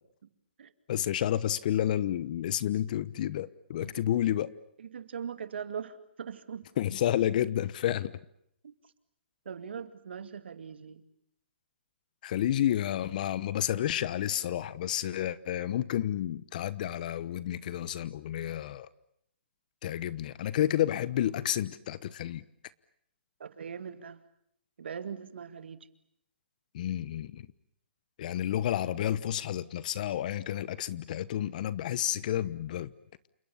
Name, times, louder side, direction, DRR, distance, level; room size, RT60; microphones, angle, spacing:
voice 1, 0.9-4.5 6.8-8.1 12.2-18.9 19.8-22.4 26.7-27.5 28.2-32.9, left 11 dB, 45° left, 1.1 m, -30 dB
voice 2, 4.8-6.7 8.6-8.7 9.5-11.0 23.4-24.2 24.8-25.9, right 7 dB, 70° right, 2.4 m, -41 dB
29.0 x 26.5 x 7.1 m
hypercardioid pair, 150°, 6 cm